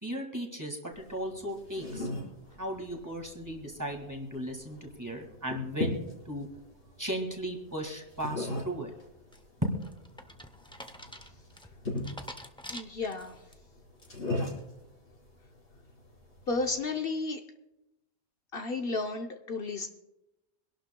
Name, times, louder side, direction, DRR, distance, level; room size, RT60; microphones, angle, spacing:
voice 1, 0.0-2.1 2.6-6.5 7.0-8.9 9.6-9.8, equal, 15° right, 2 dB, 1.8 m, -36 dB
sound 1, 0.9-16.8, left 2 dB, 80° left, 4.6 m, -40 dB
sound 2, 9.3-13.5 14.0-14.4, equal, 5° left, 0.5 m, -47 dB
voice 2, 12.7-13.4 16.5-17.4 18.5-19.9, left 3 dB, 60° left, 4 dB, 1.0 m, -32 dB
25.5 x 11.5 x 2.2 m, 0.94 s
omnidirectional pair, 1.2 m